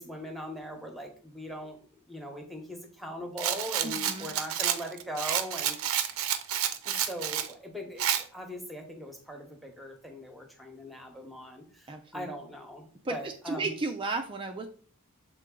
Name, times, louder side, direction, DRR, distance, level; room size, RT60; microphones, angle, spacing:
voice 1, 0.0-6.0 6.8-13.7, equal, ahead, 3 dB, 1.0 m, -40 dB
Rattle, 3.4-7.5 8.0-8.2, right 10 dB, 70° right, 0.6 m, -30 dB
voice 2, 3.8-4.3 11.9-12.3 13.0-14.7, right 3 dB, 25° right, 4 dB, 0.4 m, -34 dB
6.7 x 3.8 x 3.7 m, 0.43 s
head